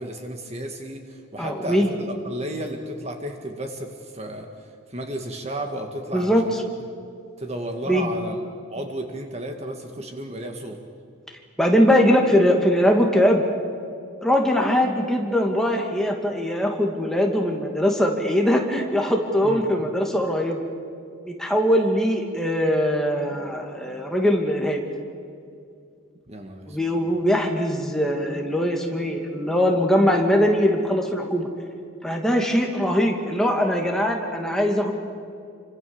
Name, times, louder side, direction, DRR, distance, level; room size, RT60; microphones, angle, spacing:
voice 1, 0.0-6.5 7.4-10.8 19.4-19.7 26.3-26.8, right 1 dB, 30° right, 4 dB, 1.9 m, -33 dB
voice 2, 1.4-1.9 6.1-6.4 7.9-8.1 11.6-13.4 14.2-20.6 21.3-24.8 26.7-31.5 32.0-34.9, equal, ahead, 1 dB, 2.5 m, -21 dB
29.5 x 25.5 x 7.2 m, 2.4 s
head